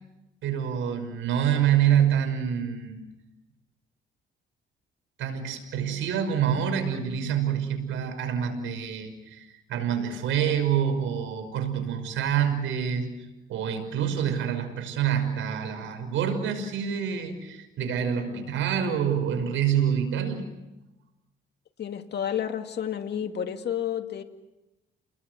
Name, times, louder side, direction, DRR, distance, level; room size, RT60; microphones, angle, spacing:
voice 1, 0.4-3.0 5.2-13.1 13.5-20.5, right 8 dB, 80° right, 6 dB, 5.7 m, -26 dB
voice 2, 21.8-24.2, left 9 dB, 55° left, 5 dB, 2.2 m, -31 dB
29.5 x 21.0 x 8.1 m, 1.0 s
cardioid pair, 90°, 20 cm